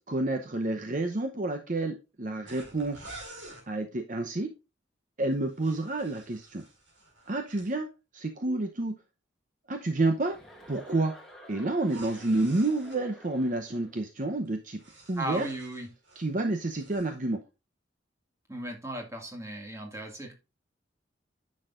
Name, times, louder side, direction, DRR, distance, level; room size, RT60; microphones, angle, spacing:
voice 1, 0.1-3.2 3.7-4.5 5.2-6.6 7.3-7.9 8.1-8.9 9.7-10.4 10.7-11.1 11.5-14.8 15.1-15.5 16.2-17.4, right 2 dB, 45° right, 5 dB, 0.8 m, -29 dB
Zipper up and down, 2.5-3.7 5.3-7.7 11.8-13.0 14.5-16.3 16.6-17.1, right 2 dB, 80° right, 4.4 m, -49 dB
Chuckle chortle, 10.2-13.9, equal, ahead, 1.9 m, -52 dB
voice 2, 15.2-15.9 18.5-20.3, right 1 dB, 15° right, 3 dB, 2.0 m, -36 dB
10.0 x 6.4 x 2.5 m, 0.27 s
head